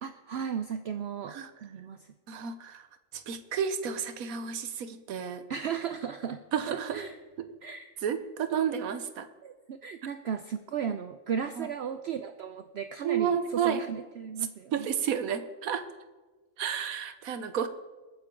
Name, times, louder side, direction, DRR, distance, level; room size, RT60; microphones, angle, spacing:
voice 1, 0.0-2.1 5.5-7.2 7.6-7.9 9.4-14.9, right 7 dB, 60° right, 9 dB, 0.8 m, -35 dB
voice 2, 2.3-2.9 3.1-5.4 6.5-7.0 7.4-7.5 8.0-9.3 11.6-11.7 13.0-13.8 14.7-15.8 16.6-17.7, right 8 dB, 90° right, 11 dB, 1.3 m, -31 dB
21.0 x 9.5 x 3.8 m, 1.2 s
omnidirectional pair, 1.4 m